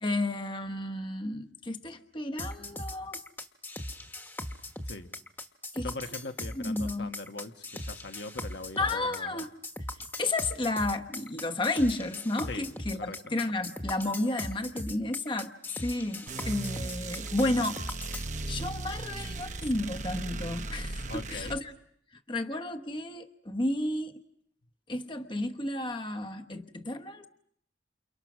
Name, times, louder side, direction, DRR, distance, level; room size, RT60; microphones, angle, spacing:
voice 1, 0.0-3.2 5.7-5.9 6.5-7.1 8.8-9.5 10.2-17.9 18.5-21.7 22.3-24.2 24.9-27.3, left 2 dB, 25° left, 1.1 m, -32 dB
sound 1, 2.4-18.3, left 1 dB, 10° left, 1.4 m, -39 dB
voice 2, 5.8-9.4 12.5-12.7 12.9-13.2 21.1-21.6, left 2 dB, 70° left, 1.4 m, -41 dB
sound 2, 16.3-21.6, right 2 dB, 40° right, 1.1 m, -37 dB
29.5 x 29.0 x 6.2 m
head